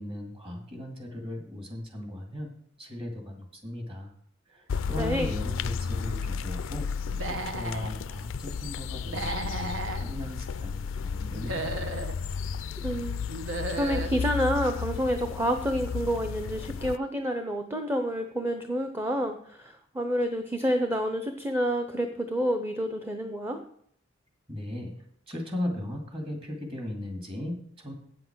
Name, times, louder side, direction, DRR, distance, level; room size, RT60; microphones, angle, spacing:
voice 1, 0.0-2.5 2.8-4.1 4.5-6.9 7.2-11.9 24.5-24.9 25.3-27.9, left 1 dB, 30° right, 2 dB, 2.2 m, -37 dB
sound 1, 4.7-17.0, left 6 dB, 90° left, 0.4 m, -33 dB
voice 2, 5.0-5.3 12.8-23.6, equal, 10° right, 6 dB, 0.6 m, -29 dB
Human voice / Animal, 7.1-7.9 9.0-10.0 11.3-12.1 13.3-14.1, right 2 dB, 80° right, 1.1 m, -34 dB
8.5 x 7.8 x 6.1 m, 0.65 s
head